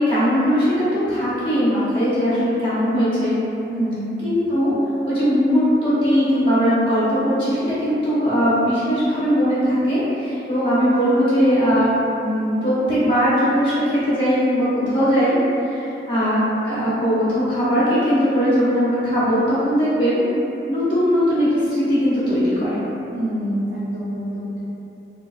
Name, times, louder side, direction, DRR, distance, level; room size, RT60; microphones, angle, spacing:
voice 1, 0.0-3.3 4.2-4.7 5.1-15.4 15.7-20.2 20.7-22.8, equal, 30° left, -12 dB, 0.9 m, -19 dB
voice 2, 3.7-4.1 23.1-24.6, right 1 dB, 80° right, -9 dB, 0.4 m, -26 dB
3.2 x 2.0 x 2.6 m, 2.9 s
head